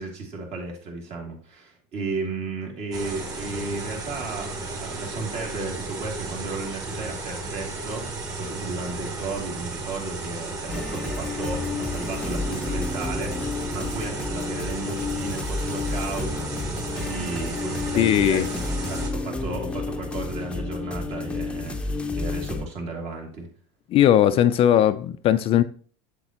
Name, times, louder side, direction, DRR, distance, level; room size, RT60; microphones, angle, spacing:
voice 1, 0.0-8.1 8.4-16.5 17.0-18.5 18.9-23.5, right 3 dB, 45° right, 2.8 m, -34 dB
sound 1, 2.9-19.1, right 3 dB, 25° right, 2.7 m, -34 dB
sound 2, 10.7-22.7, left 3 dB, 5° left, 0.7 m, -31 dB
voice 2, 18.0-18.5 23.9-25.6, left 11 dB, 40° left, 0.4 m, -18 dB
8.0 x 7.8 x 3.0 m
supercardioid pair, 130°, 15 cm